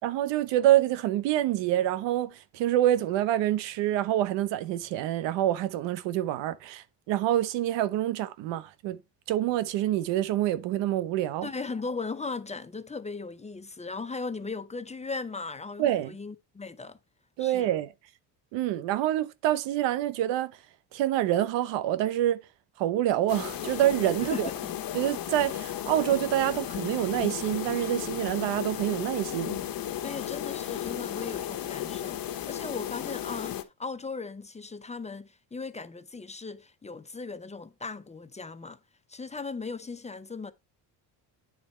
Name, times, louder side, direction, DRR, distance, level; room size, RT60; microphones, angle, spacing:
voice 1, 0.0-9.0 9.3-11.5 15.8-16.1 17.4-17.9 18.5-20.5 20.9-22.4 22.8-24.5 24.9-29.6, right 13 dB, 90° right, 0.9 m, -26 dB
voice 2, 11.4-17.0 17.4-17.7 24.2-24.7 30.0-38.8 39.1-40.5, left 4 dB, 15° left, 0.6 m, -38 dB
sound 1, 23.3-33.6, left 11 dB, 55° left, 1.0 m, -34 dB
9.7 x 4.2 x 4.3 m
cardioid pair, 100°, 43 cm